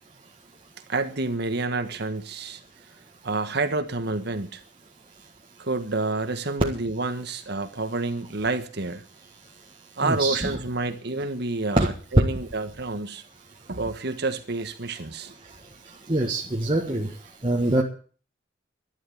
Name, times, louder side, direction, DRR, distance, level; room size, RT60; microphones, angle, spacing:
voice 1, 0.9-2.6 3.2-4.6 5.6-9.0 10.0-13.2 13.7-15.3, right 3 dB, 60° right, 1.5 m, -28 dB
voice 2, 10.0-10.6 11.8-11.9 16.1-17.1 17.4-17.8, right 1 dB, 25° right, 1.7 m, -24 dB
11.5 x 11.5 x 8.6 m
head